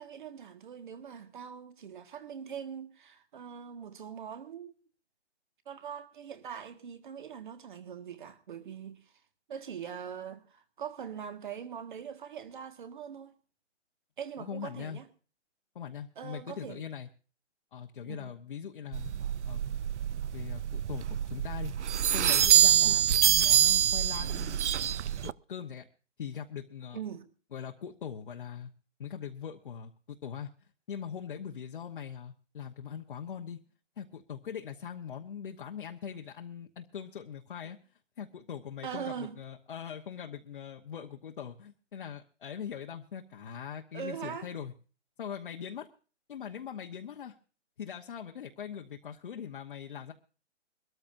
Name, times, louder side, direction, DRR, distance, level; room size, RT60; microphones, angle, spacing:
voice 1, 0.0-4.7 5.7-9.0 9.5-13.3 14.2-15.1 16.2-16.8 18.1-18.3 22.8-22.9 26.9-27.3 38.8-39.4 43.9-44.5, right 8 dB, 45° right, 1.8 m, -42 dB
voice 2, 14.4-15.0 15.7-17.1 17.7-19.1 19.5-19.6 20.2-21.7 22.1-24.6 25.2-25.9 26.2-27.0 27.5-28.7 29.0-33.6 34.0-37.8 38.2-44.7 45.2-45.9 46.3-47.3 47.8-50.1, left 8 dB, 45° left, 1.1 m, -41 dB
sound 1, 18.9-25.3, right 10 dB, 75° right, 0.5 m, -26 dB
23.5 x 13.5 x 2.6 m
hypercardioid pair, 170°, 36 cm